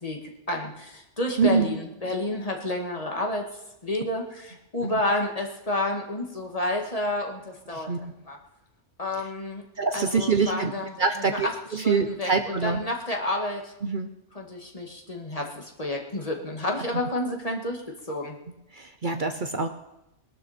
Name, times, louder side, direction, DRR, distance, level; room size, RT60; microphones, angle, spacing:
voice 1, 0.0-3.5 3.8-8.4 9.0-9.6 9.9-10.9 11.3-11.5 11.8-13.7 14.4-18.4, left 1 dB, 30° left, 1 dB, 1.9 m, -30 dB
voice 2, 1.4-1.7 4.8-4.9 7.7-8.0 9.8-10.7 11.0-12.8 13.8-14.1 18.7-19.7, right 5 dB, 50° right, 7 dB, 0.9 m, -25 dB
21.0 x 12.5 x 4.4 m, 0.91 s
omnidirectional pair, 1.2 m